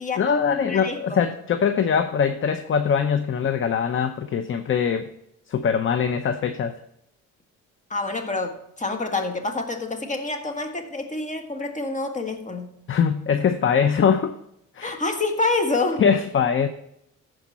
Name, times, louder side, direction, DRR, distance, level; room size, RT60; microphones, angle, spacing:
voice 1, 0.2-5.1 5.5-6.8 12.9-14.3 14.8-14.9 16.0-16.7, left 7 dB, 40° left, 9 dB, 0.7 m, -22 dB
voice 2, 0.7-1.2 7.9-12.8 14.8-16.0, left 3 dB, 25° left, 5 dB, 1.6 m, -27 dB
14.5 x 5.0 x 4.2 m, 0.77 s
cardioid pair, 90°, 30 cm